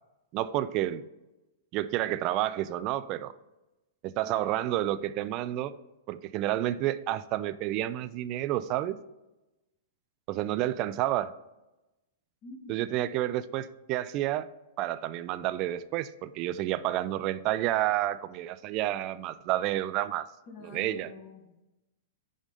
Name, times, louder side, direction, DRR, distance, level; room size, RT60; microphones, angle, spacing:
voice 1, 0.3-1.0 1.7-3.3 4.0-5.7 6.1-9.0 10.3-11.3 12.7-14.5 14.8-20.3 20.6-21.1, right 14 dB, 40° right, 14 dB, 0.3 m, -30 dB
voice 2, 12.4-12.8 20.5-21.6, left 3 dB, 30° left, -1 dB, 1.9 m, -47 dB
5.3 x 4.9 x 3.8 m, 0.99 s
hypercardioid pair, 140°, 0 cm